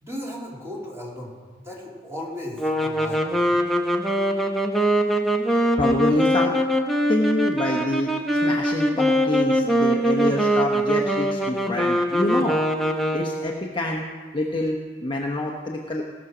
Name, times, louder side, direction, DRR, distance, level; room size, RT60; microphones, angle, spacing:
voice 1, 0.0-3.4, left 1 dB, 15° right, -4 dB, 2.7 m, -36 dB
sound 1, 2.6-13.6, equal, ahead, 0.8 m, -22 dB
voice 2, 5.8-6.5 7.1-8.1 8.4-12.6 13.1-14.0 14.3-16.0, left 1 dB, 25° left, -2 dB, 1.0 m, -26 dB
17.0 x 6.3 x 6.1 m, 1.5 s
head